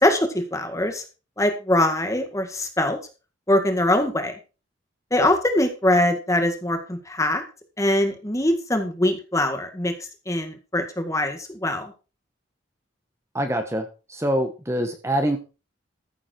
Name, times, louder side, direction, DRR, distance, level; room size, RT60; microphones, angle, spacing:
voice 1, 0.0-1.0 1.4-3.0 3.5-4.4 5.1-7.4 7.8-9.9 10.3-11.9, left 1 dB, 15° left, 7 dB, 1.8 m, -22 dB
voice 2, 13.3-15.4, right 1 dB, 15° right, 6 dB, 1.2 m, -25 dB
14.0 x 7.4 x 4.5 m, 0.32 s
head